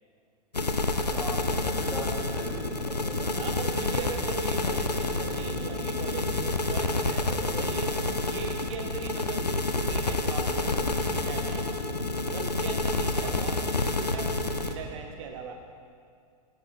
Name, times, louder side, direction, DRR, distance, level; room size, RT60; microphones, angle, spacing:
sound 1, 0.5-14.7, left 2 dB, 90° left, 0.6 m, -29 dB
voice 1, 1.1-3.3 13.1-13.3, left 1 dB, 10° left, -2 dB, 1.6 m, -40 dB
voice 2, 3.4-12.0 12.2-15.7, right 6 dB, 45° right, 4 dB, 0.7 m, -39 dB
14.5 x 7.3 x 2.7 m, 2.3 s
figure-of-eight pair, 95°, 20 cm